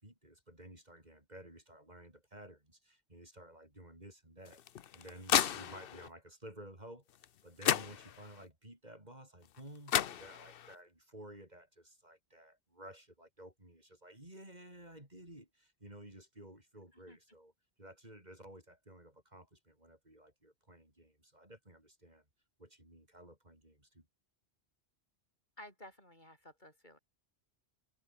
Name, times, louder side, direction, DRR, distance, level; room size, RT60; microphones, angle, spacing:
voice 1, 0.0-17.5 17.8-22.2 22.6-24.1, right 1 dB, 40° right, 6.2 m, -54 dB
sound 1, 4.5-6.1 7.2-7.3 7.6-8.4 9.6-9.7 9.9-10.7, left 9 dB, 60° left, 0.9 m, -33 dB
voice 2, 25.6-27.0, left 1 dB, 45° left, 8.3 m, -54 dB
omnidirectional pair, 1.1 m